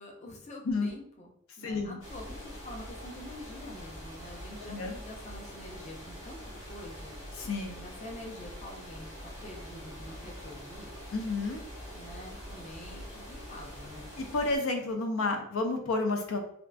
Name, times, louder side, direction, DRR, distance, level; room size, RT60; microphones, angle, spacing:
voice 1, 0.0-7.2 7.8-10.9 11.9-14.1, left 1 dB, 35° left, 1 dB, 0.6 m, -46 dB
voice 2, 1.6-2.0 4.7-4.9 7.4-7.8 11.1-11.6 14.2-16.4, left 3 dB, 85° left, 4 dB, 0.5 m, -30 dB
sound 1, 2.0-14.6, equal, 65° left, 1.3 m, -44 dB
3.5 x 2.4 x 2.3 m, 0.69 s
head